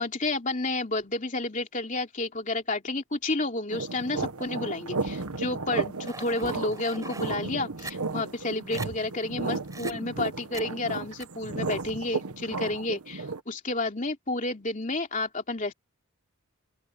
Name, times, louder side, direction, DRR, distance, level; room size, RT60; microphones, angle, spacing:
voice 1, 0.0-15.7, left 2 dB, 35° left, 3.1 m, -31 dB
sound 1, 3.7-13.4, right 3 dB, 85° right, 1.3 m, -34 dB
sound 2, 6.0-7.3 7.8-7.9 8.4-8.5 8.7-8.9 9.7-9.9 10.5-10.7 11.2-11.3, right 3 dB, 15° right, 5.0 m, -41 dB
open air
head